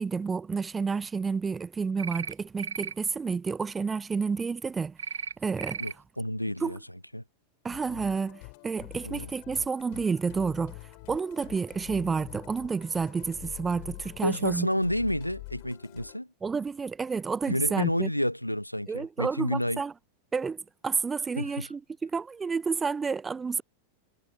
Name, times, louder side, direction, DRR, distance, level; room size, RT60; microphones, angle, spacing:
voice 1, 0.0-5.0 5.4-5.8 6.6-6.8 7.6-10.8 11.1-14.7 16.4-18.1 18.9-19.9 20.3-23.6, right 5 dB, 15° right, 0.5 m, -30 dB
sound 1, 2.0-2.3 2.6-2.9 5.0-5.3 5.6-5.9, right 7 dB, 70° right, 1.2 m, -35 dB
voice 2, 5.8-6.8 7.1-7.2 9.0-9.3 14.2-16.3 17.5-19.8 21.4-21.7, equal, 90° left, 0.6 m, -30 dB
Musical instrument, 7.7-16.2, left 31 dB, 45° left, 4.2 m, -46 dB
figure-of-eight pair, 90°, 0 cm